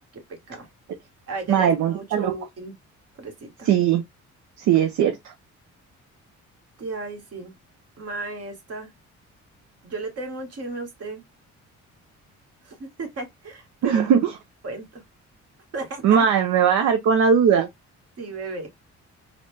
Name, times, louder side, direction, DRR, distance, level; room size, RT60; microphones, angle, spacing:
voice 1, 0.1-0.7 1.3-2.7 3.2-3.7 6.8-7.5 8.0-8.9 9.8-11.2 12.6-14.0 14.6-15.0 15.7-16.0 18.2-18.7, right 3 dB, 55° right, 1.5 m, -34 dB
voice 2, 1.5-2.3 3.6-4.0 4.6-5.3 13.8-14.3 16.0-17.7, right 7 dB, 70° right, 0.6 m, -19 dB
4.0 x 2.1 x 3.2 m
cardioid pair, 90°, 30 cm